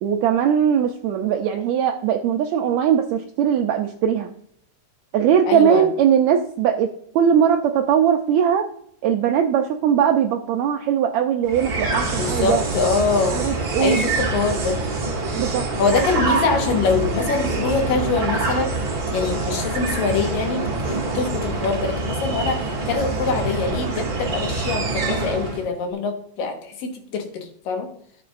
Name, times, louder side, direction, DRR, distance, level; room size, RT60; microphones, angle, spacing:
voice 1, 0.0-4.3 5.1-8.7 9.0-12.6 13.3-14.1 15.4-15.6, right 8 dB, 80° right, 4 dB, 1.6 m, -20 dB
voice 2, 5.5-5.9 12.2-13.4 13.8-14.8 15.8-18.7 19.1-27.9, left 4 dB, 90° left, 3 dB, 3.1 m, -24 dB
sound 1, 11.4-25.7, right 3 dB, 35° right, 1.7 m, -25 dB
13.0 x 7.0 x 2.5 m, 0.65 s
omnidirectional pair, 3.9 m